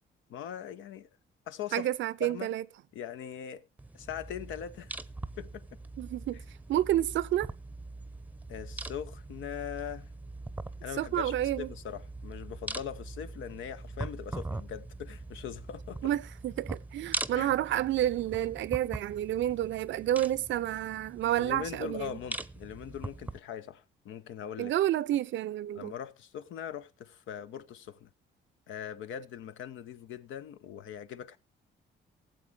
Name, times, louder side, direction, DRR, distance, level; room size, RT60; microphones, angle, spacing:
voice 1, 0.3-1.1 1.5-1.9 2.2-2.5 2.9-3.7 3.9-4.9 5.4-5.7 8.5-10.1 10.8-16.1 17.4-17.5 21.4-24.7 25.8-28.1 28.7-31.4, left 9 dB, 85° left, 0.8 m, -41 dB
voice 2, 1.7-2.6 6.0-6.4 6.7-7.5 11.0-11.7 16.0-22.2 24.6-25.9, right 13 dB, 70° right, 0.6 m, -30 dB
sound 1, 3.8-23.4, right 2 dB, 10° right, 0.6 m, -42 dB
15.5 x 7.7 x 4.9 m
cardioid pair, 90°, 20 cm